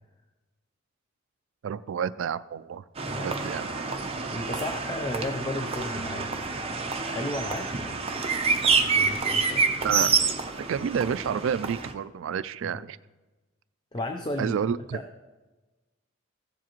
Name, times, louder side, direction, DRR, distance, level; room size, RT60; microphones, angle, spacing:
voice 1, 1.6-2.8 3.2-3.7 9.8-10.2 10.5-13.0 14.4-15.0, right 7 dB, 60° right, 15 dB, 0.3 m, -29 dB
sound 1, 3.0-11.9, right 5 dB, 30° right, 0.7 m, -27 dB
voice 2, 3.1-3.5 4.3-8.4 8.9-9.8 12.6-12.8 13.9-14.6 14.9-15.0, left 1 dB, 20° left, 4 dB, 0.5 m, -35 dB
15.5 x 7.3 x 3.0 m, 1.2 s
head